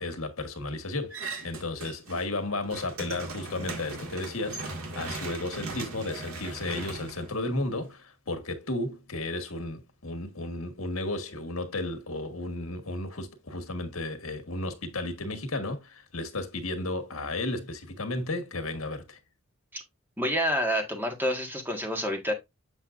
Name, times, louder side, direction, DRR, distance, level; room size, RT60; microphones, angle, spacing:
voice 1, 0.0-19.2, left 2 dB, 75° left, 1.5 m, -33 dB
sound 1, 1.1-2.2 2.5-7.9, right 3 dB, 80° right, 2.0 m, -38 dB
voice 2, 20.2-22.3, equal, 10° right, 1.6 m, -28 dB
7.7 x 5.6 x 2.5 m
head